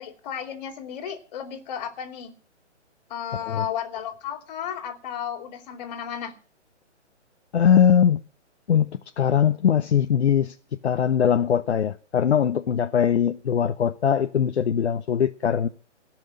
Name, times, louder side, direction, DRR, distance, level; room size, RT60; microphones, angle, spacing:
voice 1, 0.0-2.3 3.1-6.4, left 9 dB, 35° left, 3.0 m, -33 dB
voice 2, 7.5-8.2 8.7-10.5 10.8-15.7, left 8 dB, 65° left, 1.0 m, -21 dB
17.0 x 6.3 x 8.7 m
hypercardioid pair, 150°, 36 cm